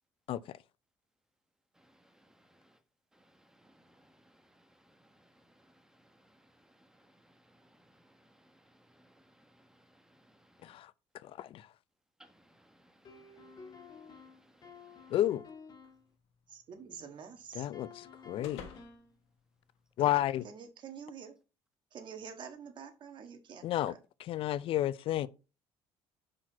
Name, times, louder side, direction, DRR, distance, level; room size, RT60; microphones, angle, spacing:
voice 1, 1.7-2.8 3.1-10.8 12.2-15.2, right 1 dB, 5° right, 1.1 m, -65 dB
voice 2, 11.2-11.6 15.1-15.4 17.6-17.9 18.3-18.6 20.0-20.5 23.6-23.9 24.3-25.3, left 13 dB, 60° left, 0.4 m, -31 dB
sound 1, 13.0-16.0 17.7-19.2, left 5 dB, 40° left, 1.7 m, -51 dB
sound 2, 15.8-20.3, left 7 dB, 85° left, 1.3 m, -55 dB
voice 3, 16.5-17.7 20.4-21.3 21.9-24.0, right 6 dB, 50° right, 1.5 m, -47 dB
5.8 x 4.8 x 4.6 m
cardioid pair, 105°, 10 cm